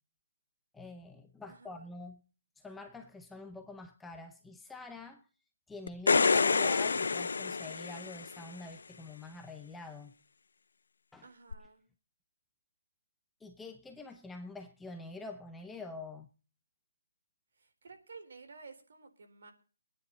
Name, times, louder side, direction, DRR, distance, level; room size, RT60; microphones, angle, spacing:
voice 1, 0.7-2.2 2.6-5.2 5.7-10.1 11.1-11.2 13.4-16.3, left 3 dB, 5° left, 0.6 m, -46 dB
voice 2, 1.5-1.9 11.2-11.8 17.6-19.5, right 4 dB, 60° right, 4.0 m, -53 dB
sound 1, 5.9-8.4 11.5-11.6, left 4 dB, 70° left, 0.6 m, -28 dB
23.0 x 9.9 x 4.0 m
hypercardioid pair, 175°, 0 cm